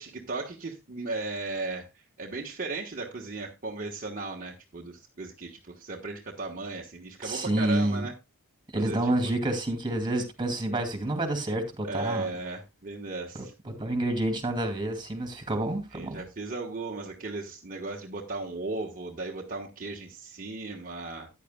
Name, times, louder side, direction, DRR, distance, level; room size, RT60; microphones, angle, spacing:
voice 1, 0.0-8.1 8.7-9.3 11.9-13.5 15.9-21.3, right 3 dB, 40° right, 1.3 m, -36 dB
voice 2, 7.2-8.1 8.7-12.3 13.3-16.2, right 1 dB, 20° right, 2.6 m, -29 dB
14.0 x 10.0 x 2.2 m
head